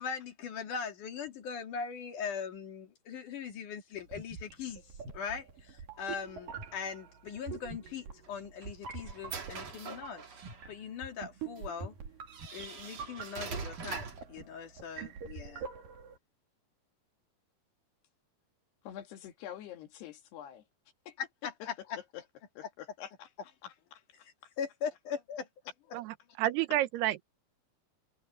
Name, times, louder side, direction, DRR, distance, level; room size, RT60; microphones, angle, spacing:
voice 1, 0.0-4.8 5.1-10.2 10.7-11.9 12.5-15.7 21.2-22.0 24.6-25.5, left 6 dB, 55° left, 3.5 m, -40 dB
sound 1, 4.0-16.2, right 6 dB, 60° right, 4.5 m, -45 dB
sound 2, 8.2-10.7 11.6-11.7 12.3-14.3, right 5 dB, 45° right, 3.8 m, -43 dB
voice 2, 18.8-20.6 21.1-21.2 22.1-22.2 22.6-23.3 23.6-24.3, left 10 dB, 80° left, 4.0 m, -46 dB
voice 3, 25.9-27.2, right 15 dB, 85° right, 2.9 m, -30 dB
omnidirectional pair, 4.6 m